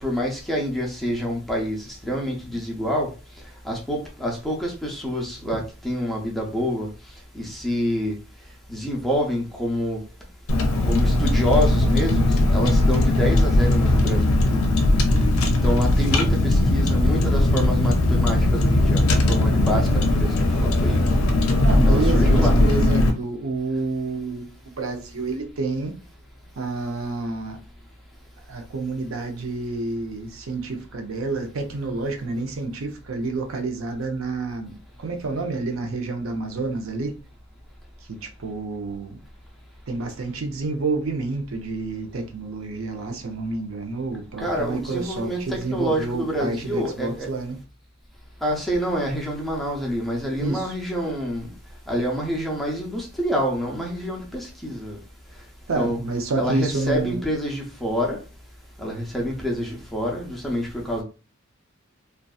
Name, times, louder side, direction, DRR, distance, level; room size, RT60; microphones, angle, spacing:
voice 1, 0.0-3.1 3.6-6.9 7.3-8.1 8.7-10.0 10.8-14.6 15.6-21.0 21.8-22.5 44.4-47.3 48.4-51.5 51.9-55.0 55.7-56.0 56.4-58.2 58.8-61.0, equal, ahead, 0.5 m, -27 dB
Car, 10.5-23.1, left 1 dB, 80° left, 0.5 m, -19 dB
voice 2, 21.6-24.5 24.8-25.9 26.6-27.6 28.5-37.2 38.1-39.2 39.9-47.6 50.4-50.7 55.7-57.2, right 3 dB, 75° right, 0.5 m, -29 dB
2.6 x 2.2 x 2.3 m
head